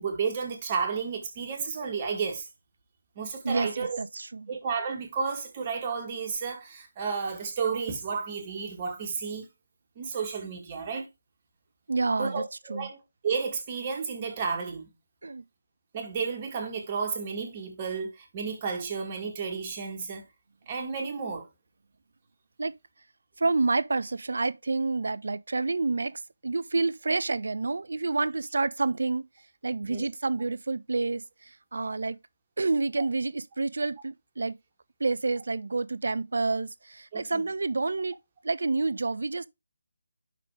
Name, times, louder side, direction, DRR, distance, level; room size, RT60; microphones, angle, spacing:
voice 1, 0.0-2.5 3.2-4.0 4.5-9.5 10.0-11.1 12.2-13.0 13.2-14.9 15.9-20.2 20.7-21.5 29.8-30.1 37.1-37.5, right 5 dB, 25° right, 1.9 m, -32 dB
voice 2, 3.4-4.5 11.9-12.4 12.7-12.9 15.2-15.4 22.6-22.7 23.4-29.3 29.6-32.2 32.6-34.6 35.0-38.2 38.4-39.5, right 3 dB, 55° right, 0.5 m, -29 dB
5.9 x 5.2 x 4.9 m
figure-of-eight pair, 150°, 0 cm